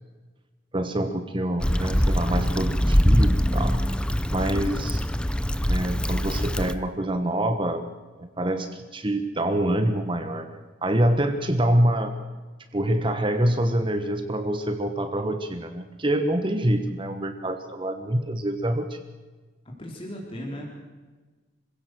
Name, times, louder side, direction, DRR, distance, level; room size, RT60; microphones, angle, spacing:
voice 1, 0.7-5.0 5.7-7.9 8.2-12.2 12.7-19.0, right 1 dB, 25° right, 7 dB, 1.3 m, -26 dB
Stream / Traffic noise roadway noise / Trickle dribble, 1.6-6.7, equal, 5° left, 0.6 m, -23 dB
voice 2, 19.6-20.6, equal, 25° left, 0 dB, 3.7 m, -36 dB
26.0 x 16.5 x 7.7 m, 1.3 s
head